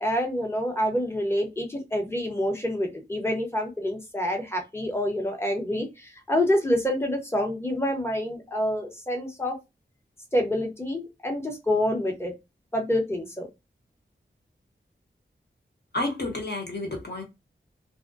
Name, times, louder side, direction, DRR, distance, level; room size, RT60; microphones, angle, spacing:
voice 1, 0.0-9.5 10.3-12.3 12.7-13.5, left 1 dB, 10° left, 2 dB, 0.8 m, -27 dB
voice 2, 15.9-17.2, left 2 dB, 60° left, 2 dB, 1.0 m, -30 dB
2.5 x 2.1 x 2.4 m, 0.23 s
wide cardioid pair, 75°, 19 cm